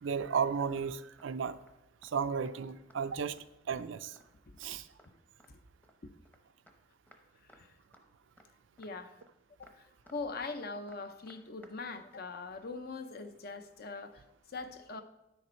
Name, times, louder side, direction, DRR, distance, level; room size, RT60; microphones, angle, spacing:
voice 1, 0.0-1.6 2.0-3.4 3.7-4.2 4.6-4.9, right 6 dB, 75° right, 12 dB, 0.4 m, -34 dB
sound 1, 0.8-0.9 1.2-1.3 1.6-1.7 2.0-2.2 2.4-2.6 2.9-3.5 3.7-3.9 4.2-4.3 4.6-4.7 5.0-5.1 5.4-6.4 6.7-6.8 7.1-7.2 7.5-8.1 8.4-8.5 8.8-8.9 9.2-9.3 9.6-10.2 10.5-10.6 10.9-11.8 12.0-12.1, equal, 10° left, 0.8 m, -61 dB
voice 2, 8.8-9.1 9.6-15.0, left 3 dB, 50° left, 9 dB, 0.7 m, -42 dB
10.0 x 6.5 x 4.4 m, 0.94 s
head